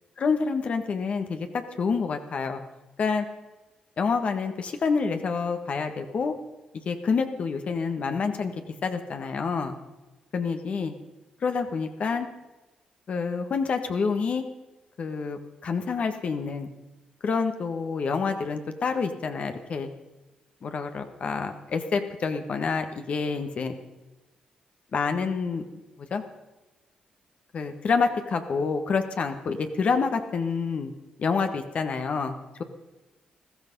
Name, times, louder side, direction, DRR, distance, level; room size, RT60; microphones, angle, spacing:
voice 1, 0.2-2.6 3.0-3.2 4.0-6.3 6.8-8.5 8.8-9.8 10.3-10.9 11.4-12.3 13.1-14.5 15.0-16.7 17.2-19.9 20.6-23.7 24.9-25.6 26.1-26.2 27.5-30.9 31.2-32.6, left 5 dB, 60° left, 6 dB, 1.5 m, -27 dB
15.0 x 13.5 x 5.4 m, 1.1 s
supercardioid pair, 50°, 2 cm